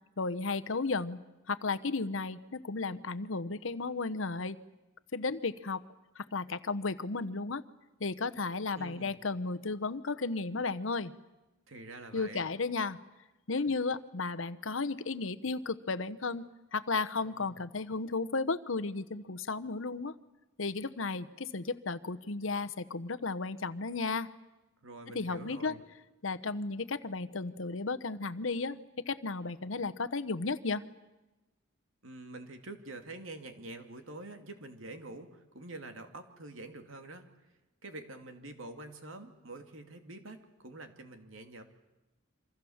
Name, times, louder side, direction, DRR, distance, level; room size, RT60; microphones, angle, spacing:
voice 1, 0.2-1.2 1.5-4.6 5.1-5.8 6.2-7.6 8.0-11.1 12.1-13.0 13.5-20.2 20.6-24.3 25.1-25.8 26.2-28.8 29.1-30.8, left 3 dB, 80° left, 14 dB, 1.0 m, -34 dB
voice 2, 8.8-9.1 11.7-12.5 17.2-17.6 24.8-25.8 32.0-37.3 37.8-41.6, right 2 dB, 85° right, 6 dB, 2.6 m, -46 dB
27.5 x 25.5 x 7.2 m, 1.0 s
head